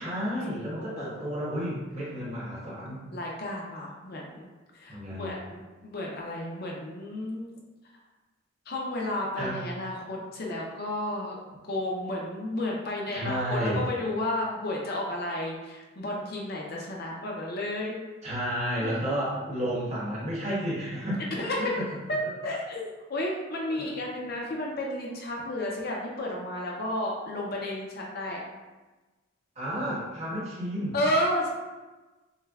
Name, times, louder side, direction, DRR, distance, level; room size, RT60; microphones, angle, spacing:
voice 1, 0.0-3.0 4.9-5.3 9.4-9.6 13.1-13.8 18.2-21.2 21.6-21.7 23.7-23.9 29.5-31.0, equal, 30° right, -7 dB, 1.1 m, -31 dB
voice 2, 0.8-1.1 3.1-4.5 4.7-7.5 8.7-11.4 11.6-18.0 18.8-18.9 21.4-21.7 22.1-28.4 30.9-31.5, left 1 dB, 45° left, -2 dB, 0.6 m, -32 dB
6.3 x 2.2 x 2.4 m, 1.2 s
head